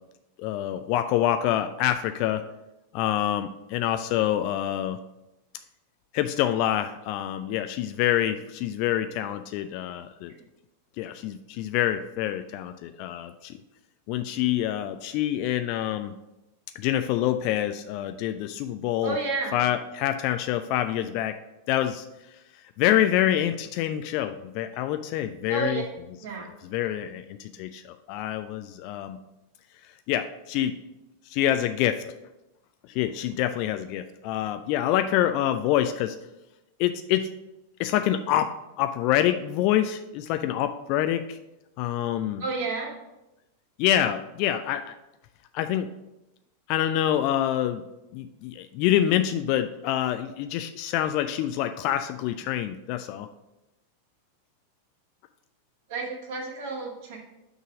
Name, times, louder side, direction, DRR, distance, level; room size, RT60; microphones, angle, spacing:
voice 1, 0.4-2.4 2.9-5.0 6.1-10.3 11.0-13.5 14.1-16.1 16.8-19.2 19.5-21.4 21.7-22.1 22.8-25.8 26.7-29.2 30.1-30.8 31.3-32.0 32.9-36.2 36.8-37.3 37.8-38.5 38.8-41.4 41.8-42.4 43.8-45.0 45.5-45.9 46.7-47.8 48.1-53.3, left 12 dB, 45° left, 9 dB, 0.3 m, -26 dB
voice 2, 19.0-19.6 25.5-25.8 26.2-26.5 42.4-43.0 55.9-57.2, right 3 dB, 50° right, 0 dB, 1.8 m, -31 dB
6.1 x 4.0 x 6.1 m, 0.95 s
figure-of-eight pair, 90°, 0 cm